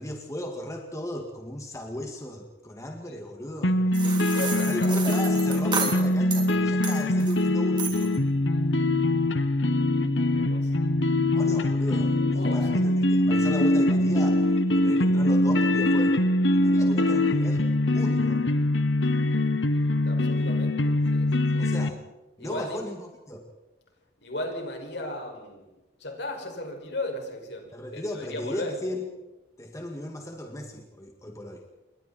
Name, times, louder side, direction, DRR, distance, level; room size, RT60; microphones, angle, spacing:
voice 1, 0.0-3.8 4.7-8.1 11.3-14.4 14.7-16.2 16.5-17.7 17.9-18.4 21.6-22.0 22.4-23.0 23.3-23.4 27.7-29.1 29.6-31.6, left 1 dB, 15° left, 2 dB, 2.1 m, -36 dB
sound 1, 3.6-21.9, left 1 dB, 90° left, 1.4 m, -23 dB
sound 2, 3.9-6.5 6.8-7.4 7.8-8.2, right 5 dB, 25° right, 3.4 m, -32 dB
voice 2, 4.0-5.0 10.3-10.8 12.2-12.7 20.0-21.7 22.4-22.8 24.2-25.7 26.0-28.8, left 1 dB, 70° left, 2 dB, 6.1 m, -36 dB
29.0 x 23.0 x 4.4 m, 1.0 s
head